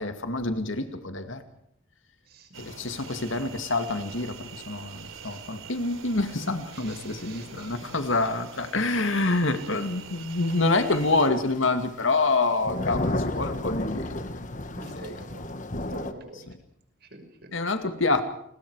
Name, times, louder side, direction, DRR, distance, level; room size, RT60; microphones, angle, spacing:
voice 1, 0.0-1.4 2.6-14.5 15.0-15.1 17.5-18.2, left 3 dB, 65° left, 8 dB, 2.3 m, -27 dB
voice 2, 2.3-3.1 5.1-5.2 6.7-8.0 9.5-10.6 14.7-15.4 15.9-16.5 17.0-17.5, right 2 dB, 50° right, 6 dB, 5.8 m, -47 dB
sound 1, 2.5-11.3, right 6 dB, 80° right, 3.9 m, -45 dB
sound 2, 10.5-10.9 11.2-11.7 12.0-16.1, left 1 dB, 35° left, 1.4 m, -32 dB
29.5 x 21.5 x 4.9 m, 0.69 s
head